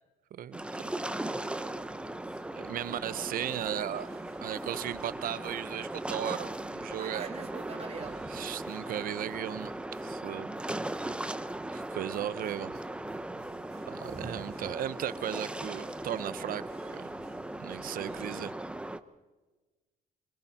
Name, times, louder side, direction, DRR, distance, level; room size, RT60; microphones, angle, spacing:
sound 1, 0.5-19.0, right 1 dB, 5° right, 1.0 m, -38 dB
voice 1, 0.8-3.5, left 3 dB, 70° left, 7.0 m, -57 dB
Fixed-wing aircraft airplane, 1.8-8.2, right 6 dB, 35° right, 2.3 m, -48 dB
voice 2, 2.6-4.1 4.4-7.4 8.3-9.7 10.0-10.5 11.7-12.8 13.9-16.6 16.9-17.0 17.6-18.5, right 11 dB, 55° right, 0.9 m, -36 dB
sound 2, 2.8-18.3, right 7 dB, 80° right, 5.0 m, -59 dB
26.5 x 25.0 x 4.4 m
cardioid pair, 110°, 17 cm